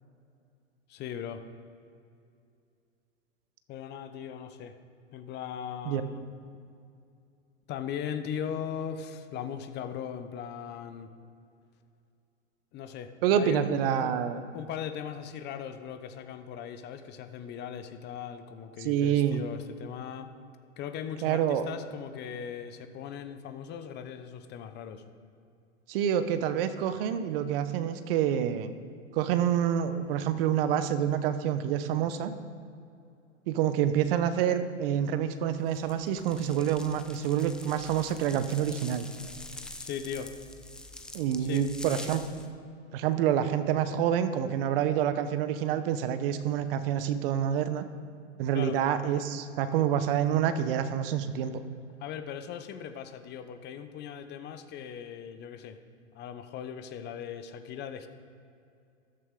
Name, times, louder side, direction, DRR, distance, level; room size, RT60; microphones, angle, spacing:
voice 1, 0.9-1.4 3.7-4.7 5.1-6.2 7.7-11.1 12.7-14.1 14.5-20.3 20.8-25.0 39.8-40.3 41.4-41.7 48.5-48.8 52.0-55.8 56.1-58.1, left 8 dB, 30° left, 9 dB, 0.8 m, -39 dB
voice 2, 13.2-14.4 18.8-19.4 21.2-21.6 25.9-28.7 29.1-32.3 33.5-39.1 41.1-42.2 42.9-47.8 48.4-51.5, right 9 dB, 50° right, 11 dB, 0.9 m, -27 dB
sound 1, 35.7-42.5, left 2 dB, ahead, 0.4 m, -45 dB
13.5 x 12.5 x 3.7 m, 2.5 s
hypercardioid pair, 120°, 37 cm